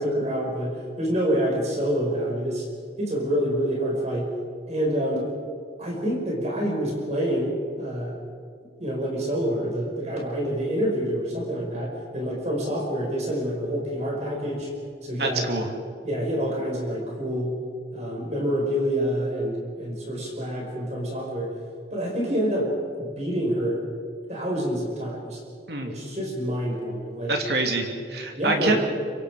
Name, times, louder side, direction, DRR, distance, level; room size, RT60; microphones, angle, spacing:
voice 1, 0.0-2.7 3.0-4.3 4.7-5.3 5.8-8.2 8.8-14.7 15.0-15.5 16.0-17.6 17.9-21.5 21.9-22.7 23.0-23.8 24.3-25.4 25.8-27.3 28.3-28.8, equal, 35° right, -1 dB, 5.6 m, -27 dB
voice 2, 15.2-15.7 25.7-25.9 27.3-28.8, right 2 dB, 60° right, 3 dB, 2.9 m, -26 dB
26.0 x 24.5 x 5.1 m, 2.1 s
head